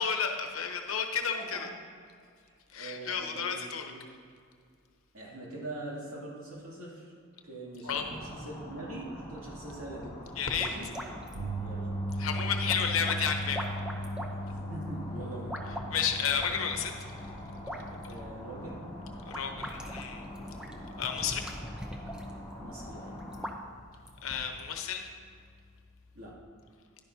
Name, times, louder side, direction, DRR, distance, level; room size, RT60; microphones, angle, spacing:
voice 1, 0.0-1.7 2.7-3.9 7.8-8.1 10.4-10.7 12.2-13.6 15.9-16.9 19.3-20.2 21.0-21.4 24.2-25.1, left 7 dB, 75° left, 4 dB, 0.9 m, -31 dB
voice 2, 1.3-1.7 2.5-3.6 3.9-4.0 5.1-7.1 7.4-10.2 10.5-10.9 11.6-11.9 13.0-13.1 14.4-15.6 18.0-18.8 22.6-23.2 26.1-26.3, right 1 dB, 80° right, -5 dB, 2.6 m, -43 dB
sound 1, 7.9-23.5, left 1 dB, 20° left, 2.0 m, -45 dB
sound 2, 10.2-24.8, equal, 5° right, 0.6 m, -44 dB
sound 3, 11.3-23.6 23.9-24.2 26.4-26.5, equal, 55° right, 2.5 m, -39 dB
10.5 x 10.5 x 2.8 m, 2.2 s
head